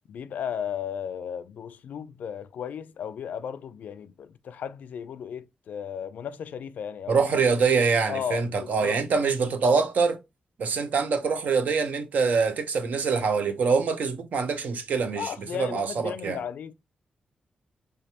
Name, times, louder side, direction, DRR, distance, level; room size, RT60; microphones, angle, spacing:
voice 1, 0.1-7.2 8.1-9.0 15.2-16.7, left 8 dB, 80° left, 0.3 m, -35 dB
voice 2, 7.1-10.2 10.6-16.4, right 5 dB, 75° right, 0.7 m, -24 dB
3.5 x 3.2 x 2.7 m
cardioid pair, 70°, 3 cm